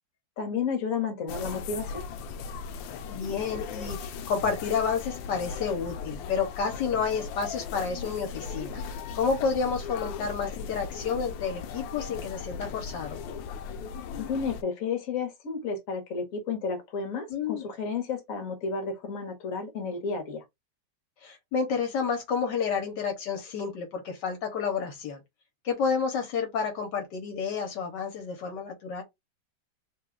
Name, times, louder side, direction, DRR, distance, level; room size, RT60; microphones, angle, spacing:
voice 1, 0.4-2.0 14.2-20.4, left 5 dB, 50° left, 1.4 m, -32 dB
sound 1, 1.3-14.6, left 6 dB, 90° left, 1.3 m, -38 dB
voice 2, 3.1-8.8 9.1-13.2 17.3-17.7 21.2-25.2 25.6-29.0, left 5 dB, 75° left, 1.5 m, -30 dB
3.7 x 2.2 x 3.6 m
omnidirectional pair, 2.0 m